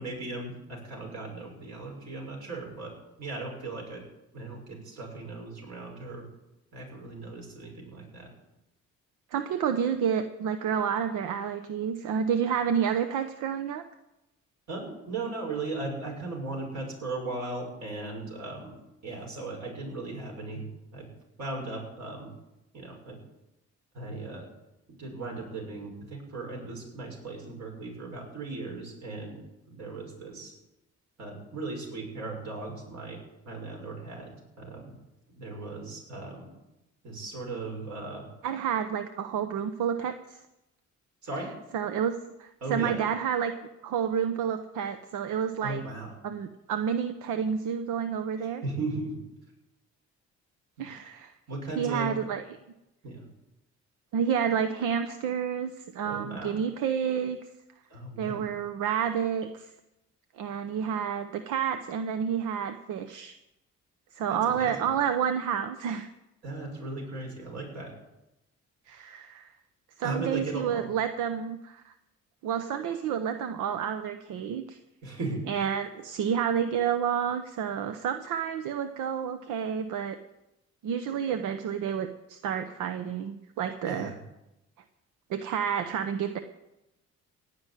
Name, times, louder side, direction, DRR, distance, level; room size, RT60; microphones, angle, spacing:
voice 1, 0.0-2.9 3.2-4.0 4.3-6.3 6.7-8.3 14.7-18.8 19.0-21.1 21.4-22.3 22.7-23.2 23.9-24.5 25.0-29.4 29.7-30.5 31.2-33.2 33.5-35.0 35.3-36.6 37.0-38.3 41.2-41.5 42.6-43.0 45.6-46.1 48.6-49.2 50.8-50.9 51.5-52.1 53.0-53.3 56.0-56.6 57.9-58.4 64.3-64.9 66.4-67.9 70.0-70.9 75.0-75.4 83.8-84.2, right 3 dB, 65° right, 0 dB, 6.3 m, -37 dB
voice 2, 9.3-13.8 38.4-40.4 41.7-42.1 42.4-43.5 43.8-45.8 46.2-48.6 50.8-51.3 51.8-52.4 54.1-57.4 58.2-59.7 60.4-63.3 64.1-66.1 68.9-69.5 70.0-71.9 72.4-74.8 75.5-80.2 80.8-84.1 85.3-86.4, right 8 dB, 90° right, 9 dB, 0.8 m, -29 dB
17.5 x 6.1 x 9.9 m, 0.94 s
cardioid pair, 90°, 30 cm